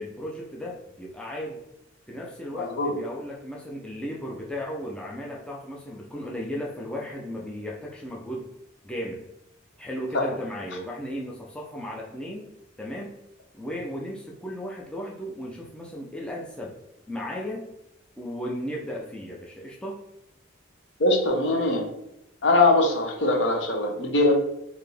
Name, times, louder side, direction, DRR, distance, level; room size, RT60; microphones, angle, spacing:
voice 1, 0.0-1.6 2.1-8.5 8.8-9.3 9.8-12.5 12.8-13.2 13.6-16.8 17.1-17.7 18.2-20.0, equal, 5° left, -3 dB, 0.4 m, -35 dB
voice 2, 2.5-2.9 10.1-10.2 21.0-21.9 22.4-24.4, left 2 dB, 65° left, 2 dB, 0.8 m, -22 dB
4.0 x 2.7 x 3.3 m, 0.84 s
head